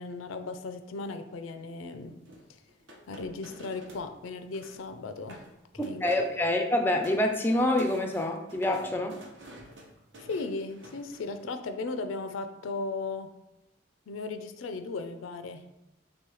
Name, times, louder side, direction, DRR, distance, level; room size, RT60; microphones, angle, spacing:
voice 1, 0.0-2.2 3.1-5.4 5.8-6.1 6.4-6.5 10.2-13.3 14.1-15.7, left 3 dB, 85° left, 9 dB, 0.4 m, -36 dB
sound 1, 2.2-4.1 4.4-4.9 5.2-5.5 5.8-6.4 6.7-11.4, right 1 dB, 65° right, 0.8 m, -50 dB
voice 2, 5.8-9.2, left 1 dB, 10° left, 4 dB, 0.3 m, -26 dB
3.2 x 3.0 x 4.7 m, 0.89 s
head